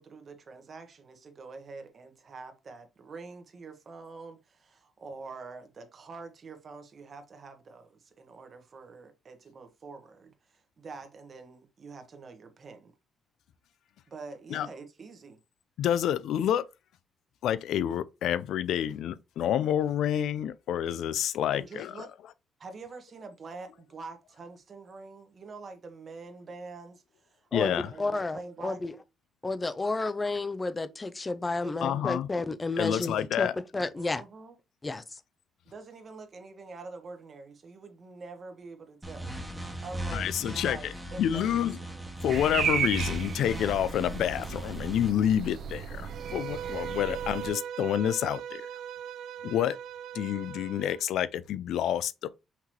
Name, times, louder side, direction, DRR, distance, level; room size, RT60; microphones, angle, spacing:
voice 1, 0.0-12.9 14.1-15.4 21.5-22.1 22.6-28.8 31.6-32.0 33.9-34.5 35.6-42.0, right 4 dB, 45° right, 1.1 m, -46 dB
voice 2, 15.8-16.7 17.4-21.9 27.5-27.9 31.8-32.3 32.8-33.6 40.1-40.8 41.2-41.7 42.2-48.6 49.4-49.8 50.1-52.3, left 10 dB, 80° left, 0.4 m, -28 dB
voice 3, 27.5-28.9 29.4-33.5 33.7-34.2 34.8-35.0, left 3 dB, 25° left, 0.5 m, -31 dB
sound 1, 39.0-45.1, equal, 5° right, 1.2 m, -38 dB
sound 2, 42.3-47.5, right 7 dB, 60° right, 0.9 m, -34 dB
Bowed string instrument, 46.0-51.0, right 9 dB, 80° right, 0.4 m, -39 dB
5.8 x 2.9 x 3.1 m
cardioid pair, 90°, 0 cm